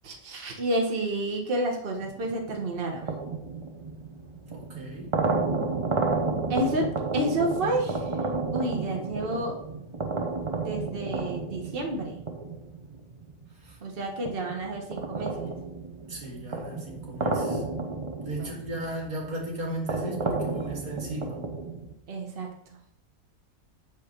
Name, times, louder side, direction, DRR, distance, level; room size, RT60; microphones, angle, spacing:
voice 1, 0.0-3.1 6.5-8.2 8.5-9.6 10.6-12.2 13.8-15.5 18.4-18.6 22.1-22.5, right 1 dB, 40° right, 1 dB, 1.6 m, -30 dB
sound 1, 2.0-13.7 14.2-21.9, right 3 dB, 25° right, 0.8 m, -32 dB
voice 2, 4.5-5.1 13.6-13.8 16.1-17.6 18.2-21.4, right 1 dB, 90° right, -1 dB, 2.5 m, -36 dB
8.4 x 4.0 x 6.6 m, 0.72 s
omnidirectional pair, 1.5 m